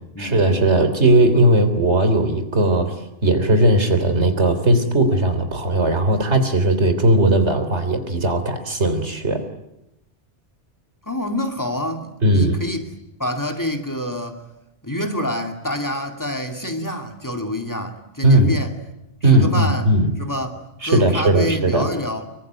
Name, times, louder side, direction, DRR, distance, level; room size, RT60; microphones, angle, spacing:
voice 1, 0.2-3.0 3.2-9.4 12.2-12.6 18.2-18.6 19.2-20.1 20.8-21.9, right 1 dB, 75° right, 9 dB, 3.7 m, -17 dB
voice 2, 11.1-12.9 13.2-14.4 14.8-18.7 19.2-19.9 20.2-22.3, left 1 dB, 15° left, 4 dB, 2.5 m, -27 dB
25.0 x 24.0 x 9.4 m, 0.88 s
omnidirectional pair, 1.2 m